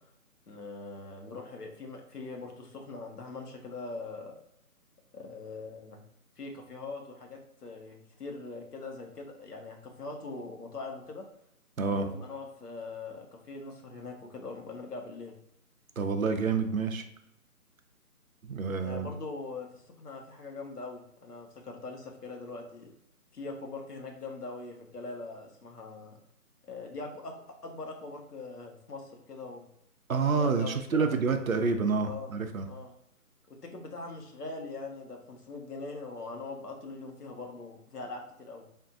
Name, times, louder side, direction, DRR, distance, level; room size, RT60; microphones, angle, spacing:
voice 1, 0.5-4.3 5.1-6.0 6.4-11.3 11.8-15.3 18.8-22.9 23.3-26.2 26.6-27.3 27.6-29.7 30.3-31.1 32.1-32.3 32.7-32.9 33.6-38.6, left 3 dB, 80° left, 2 dB, 1.1 m, -42 dB
voice 2, 11.8-12.1 16.0-17.0 18.4-19.1 30.1-32.7, right 4 dB, 65° right, 7 dB, 0.5 m, -28 dB
4.5 x 2.5 x 2.4 m, 0.79 s
figure-of-eight pair, 175°, 46 cm